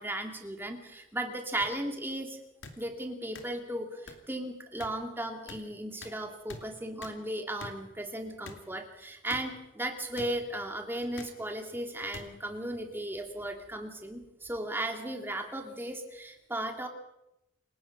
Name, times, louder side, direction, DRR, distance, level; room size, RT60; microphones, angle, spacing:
voice 1, 0.0-2.4 2.8-16.9, right 1 dB, 10° right, 4 dB, 2.4 m, -36 dB
sound 1, 1.6-1.7 2.6-2.8 3.4-3.5 4.1-4.2 4.8-4.9 5.5-5.6 6.0-6.1 6.5-6.6 7.0-7.2 7.6-7.7 8.5-8.6 9.3-9.4 10.2-10.3 11.2-11.3 12.1-12.2 13.1-13.3, left 3 dB, 70° left, 2.7 m, -44 dB
28.5 x 17.5 x 5.9 m, 0.89 s
head